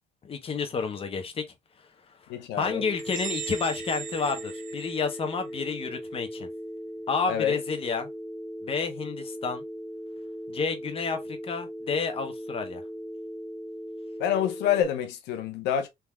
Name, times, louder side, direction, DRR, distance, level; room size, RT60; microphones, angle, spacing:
voice 1, 0.2-1.4 2.3-6.5 7.1-8.1 8.6-9.6 10.5-12.8, left 5 dB, 35° left, 0.9 m, -30 dB
voice 2, 2.3-2.8 7.3-7.5 14.2-15.9, left 9 dB, 85° left, 0.6 m, -27 dB
Telephone, 2.6-14.8, equal, 10° left, 0.5 m, -39 dB
sound 1, 3.0-5.6, right 9 dB, 55° right, 1.1 m, -39 dB
3.5 x 2.8 x 2.2 m
cardioid pair, 110°, 17 cm